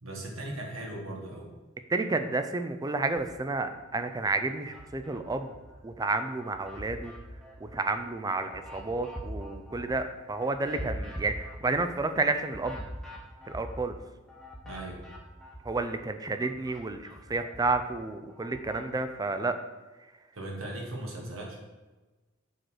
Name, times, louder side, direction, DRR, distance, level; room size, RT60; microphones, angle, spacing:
voice 1, 0.0-1.5 14.6-15.1 20.3-21.6, right 1 dB, 85° right, 0 dB, 1.6 m, -38 dB
voice 2, 1.9-5.5 5.8-7.1 7.6-12.9 13.4-14.0 15.6-19.6, right 3 dB, 20° right, 8 dB, 0.4 m, -31 dB
sound 1, 3.7-3.9 4.3-5.9 6.3-16.0 16.3-18.9, equal, ahead, 1.0 m, -44 dB
6.5 x 4.5 x 4.8 m, 1.2 s
head